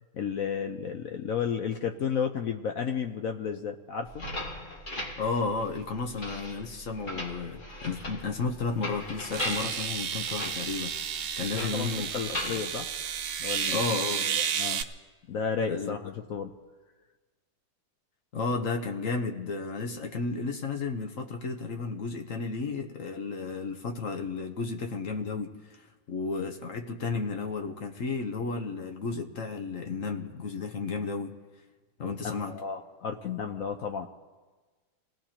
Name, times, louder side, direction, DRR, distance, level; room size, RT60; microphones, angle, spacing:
voice 1, 0.1-4.3 11.6-12.9 13.4-13.8 14.3-14.8 15.3-16.6 32.0-34.1, left 6 dB, 70° left, 4 dB, 0.8 m, -33 dB
sound 1, 4.1-13.7, left 1 dB, 25° left, 1.7 m, -39 dB
voice 2, 5.2-12.1 13.7-14.3 15.7-16.0 18.3-25.5 26.1-31.4 32.0-32.5, left 4 dB, 50° left, 3 dB, 1.1 m, -33 dB
sound 2, 8.4-8.5 9.3-14.8, right 8 dB, 80° right, 1.6 m, -32 dB
26.5 x 18.0 x 2.9 m, 1.3 s
omnidirectional pair, 2.2 m